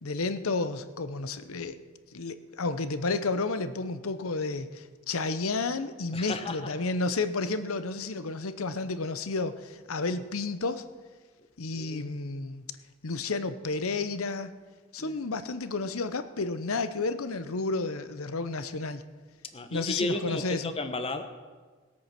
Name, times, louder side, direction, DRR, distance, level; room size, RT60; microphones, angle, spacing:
voice 1, 0.0-1.8 2.1-10.8 11.6-12.6 13.0-14.5 14.9-19.0 19.7-20.7, left 3 dB, 75° left, 12 dB, 0.8 m, -31 dB
voice 2, 6.1-6.7 11.7-12.1 15.0-15.2 19.5-21.2, left 2 dB, 25° left, 8 dB, 1.0 m, -34 dB
20.0 x 8.5 x 5.9 m, 1.4 s
head